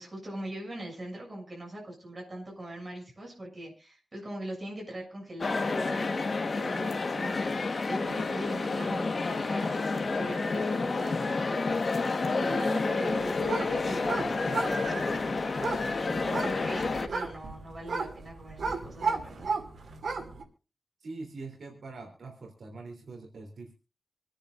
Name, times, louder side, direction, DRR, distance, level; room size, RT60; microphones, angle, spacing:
voice 1, 0.0-6.1 6.5-15.5 16.0-19.5, right 1 dB, 30° right, -2 dB, 7.3 m, -41 dB
sound 1, 5.4-17.1, left 3 dB, 45° left, 1.3 m, -29 dB
sound 2, 6.8-17.1, left 4 dB, 70° left, 3.3 m, -50 dB
sound 3, 13.1-20.4, right 4 dB, 85° right, 2.6 m, -35 dB
voice 2, 21.0-23.7, right 3 dB, 70° right, 1 dB, 3.3 m, -43 dB
27.0 x 10.0 x 2.5 m, 0.33 s
wide cardioid pair, 155°, 0 cm